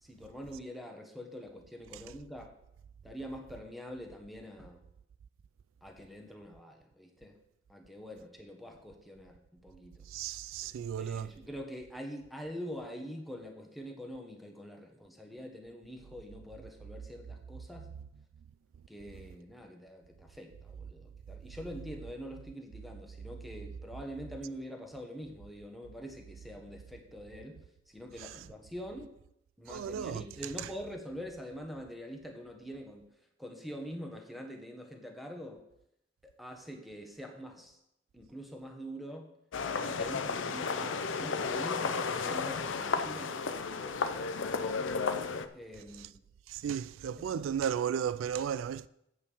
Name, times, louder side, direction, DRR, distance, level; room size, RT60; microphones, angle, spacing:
voice 1, 0.0-2.5 3.0-4.8 5.8-7.4 7.7-10.0 11.0-17.9 18.9-29.1 29.6-33.1 33.4-35.6 36.4-37.8 38.1-39.3 39.6-44.5 45.5-46.2 47.2-47.4, equal, ahead, 1.2 m, -45 dB
voice 2, 10.0-11.3 28.2-28.4 29.7-30.7 45.9-46.1 46.5-48.9, right 8 dB, 85° right, 0.3 m, -35 dB
sound 1, 39.5-45.5, left 5 dB, 75° left, 0.6 m, -33 dB
8.4 x 5.5 x 7.0 m
head